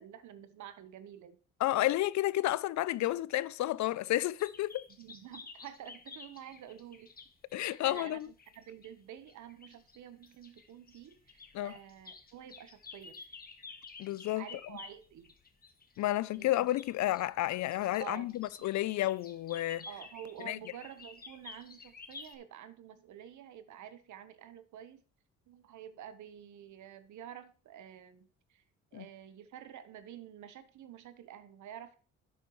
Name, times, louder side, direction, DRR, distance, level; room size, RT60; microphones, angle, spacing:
voice 1, 0.0-1.4 5.0-7.1 7.5-13.2 14.4-15.3 16.4-16.5 18.0-18.3 18.6-18.7 19.9-25.0 25.5-28.6 28.9-32.0, right 10 dB, 75° right, 1.1 m, -49 dB
voice 2, 1.6-4.9 7.5-8.3 11.5-11.7 14.0-14.4 16.0-19.9 20.4-20.6 28.9-29.1, left 15 dB, 70° left, 0.5 m, -31 dB
sound 1, 4.4-8.9 9.2-22.4, left 4 dB, 30° left, 1.4 m, -52 dB
10.5 x 8.0 x 3.1 m
cardioid pair, 90°, 30 cm